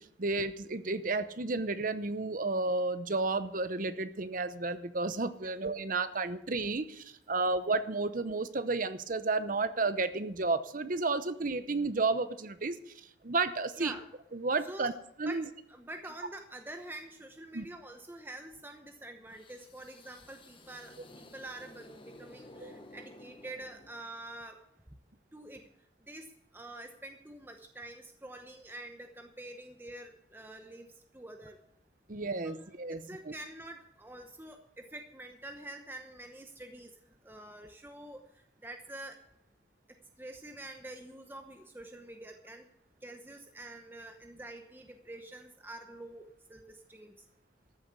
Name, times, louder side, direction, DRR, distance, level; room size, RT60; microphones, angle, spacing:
voice 1, 0.0-13.9 14.3-14.9 15.2-15.4 17.5-17.6 22.6-22.7 32.1-33.0, right 3 dB, 45° right, 12 dB, 0.8 m, -32 dB
voice 2, 13.7-14.1 14.6-14.9 15.2-24.6 25.3-31.6 32.4-39.2 39.9-42.7 43.0-47.3, right 1 dB, 10° right, 4 dB, 0.9 m, -47 dB
sound 1, 19.3-24.4, left 1 dB, 30° left, 1.2 m, -54 dB
13.5 x 7.2 x 8.0 m, 0.75 s
head